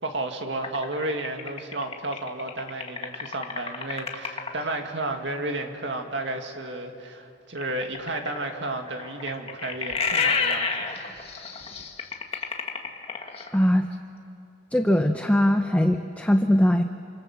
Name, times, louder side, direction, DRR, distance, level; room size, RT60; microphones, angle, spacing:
voice 1, 0.0-10.9, right 2 dB, 70° right, 4 dB, 2.3 m, -32 dB
sound 1, 0.6-4.7 7.6-13.6, left 5 dB, 30° left, 1.8 m, -29 dB
voice 2, 13.5-13.9 14.7-16.8, equal, 10° left, 5 dB, 0.7 m, -21 dB
28.0 x 26.5 x 7.4 m, 2.7 s
head